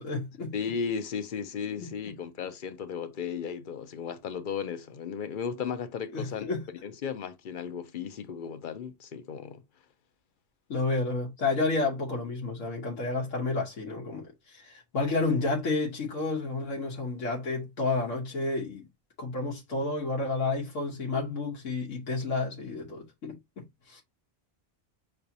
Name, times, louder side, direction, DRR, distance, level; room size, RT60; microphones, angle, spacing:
voice 1, 0.0-0.5 1.8-1.9 6.1-6.6 10.7-18.9 19.2-24.0, left 3 dB, 90° left, 1.4 m, -31 dB
voice 2, 0.5-6.5 6.8-9.6, left 6 dB, 55° left, 0.6 m, -35 dB
5.8 x 3.4 x 2.7 m
omnidirectional pair, 1.3 m